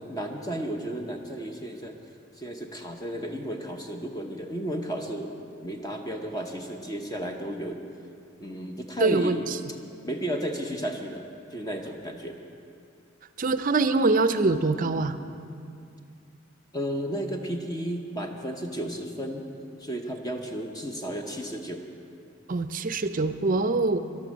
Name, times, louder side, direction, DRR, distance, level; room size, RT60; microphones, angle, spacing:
voice 1, 0.0-2.0 2.4-5.3 5.6-7.8 8.4-9.4 10.0-11.2 11.5-12.4 16.7-19.5 19.8-21.8, right 1 dB, 20° left, 3 dB, 0.7 m, -33 dB
voice 2, 9.0-9.4 13.4-15.2 22.5-24.0, right 3 dB, 40° right, 11 dB, 0.5 m, -24 dB
13.5 x 11.5 x 6.3 m, 2.5 s
head